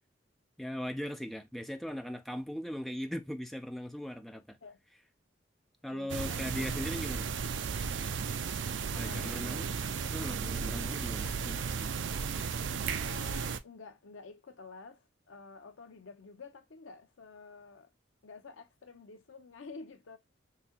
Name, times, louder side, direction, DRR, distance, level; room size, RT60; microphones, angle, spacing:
voice 1, 0.6-4.6 5.8-7.3 8.9-9.7 10.1-11.7, equal, ahead, 0.4 m, -39 dB
voice 2, 5.8-6.5 8.9-9.6 13.0-17.9 18.2-20.2, left 4 dB, 85° left, 0.6 m, -50 dB
sound 1, 6.1-13.6, right 5 dB, 70° right, 0.4 m, -34 dB
3.8 x 2.8 x 2.8 m
head